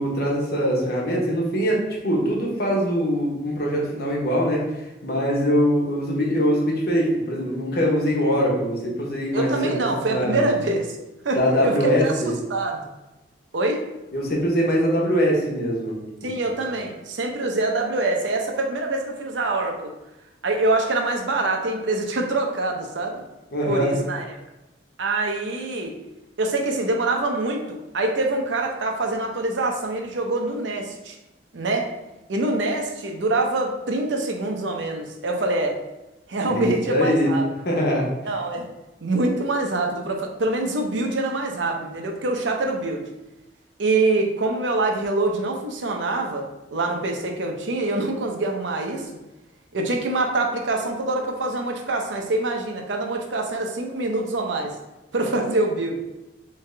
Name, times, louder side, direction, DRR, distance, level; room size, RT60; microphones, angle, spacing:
voice 1, 0.0-10.6 11.3-12.4 14.1-16.6 23.5-23.9 36.5-37.3 37.6-38.1, equal, 55° left, -2 dB, 1.1 m, -23 dB
voice 2, 9.3-11.0 11.2-11.7 12.0-12.9 13.5-13.8 16.2-19.9 20.4-23.2 23.7-24.2 25.0-26.0 26.4-31.2 31.5-31.9 32.3-35.8 36.3-37.4 38.3-38.7 39.0-43.0 43.8-46.5 46.7-49.1 49.7-54.7 55.1-56.0, right 2 dB, 85° right, 2 dB, 0.7 m, -25 dB
3.7 x 3.3 x 3.3 m, 0.98 s
head